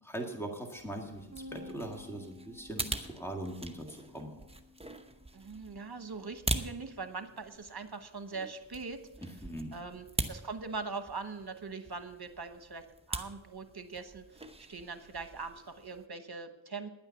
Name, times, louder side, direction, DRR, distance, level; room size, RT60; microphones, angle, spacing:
voice 1, 0.0-4.4 9.4-9.8, right 1 dB, 5° left, 2 dB, 1.8 m, -41 dB
sound 1, 0.7-16.1, right 2 dB, 15° right, 0.9 m, -42 dB
Bass guitar, 1.3-7.6, left 2 dB, 30° right, 2.3 m, -54 dB
voice 2, 5.3-9.0 9.7-14.4 14.7-16.9, right 4 dB, 55° right, 9 dB, 1.1 m, -42 dB
10.5 x 9.0 x 7.0 m, 0.95 s
wide cardioid pair, 50°, 45 cm